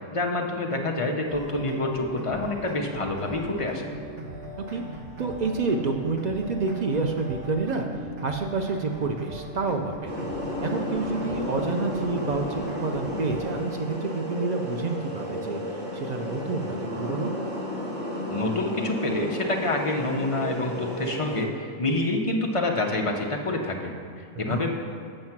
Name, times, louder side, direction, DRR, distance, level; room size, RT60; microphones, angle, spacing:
voice 1, 0.1-3.9 18.3-24.7, left 2 dB, 35° left, 1 dB, 0.5 m, -27 dB
sound 1, 1.3-13.5, equal, 55° right, 1.5 m, -39 dB
voice 2, 5.2-7.9 8.2-10.1 10.6-15.6 15.9-17.3 24.5-24.6, right 4 dB, 80° right, 3 dB, 0.3 m, -28 dB
sound 2, 10.0-21.4, left 1 dB, 35° right, 2.2 m, -33 dB
7.7 x 6.5 x 5.9 m, 2.4 s
omnidirectional pair, 1.5 m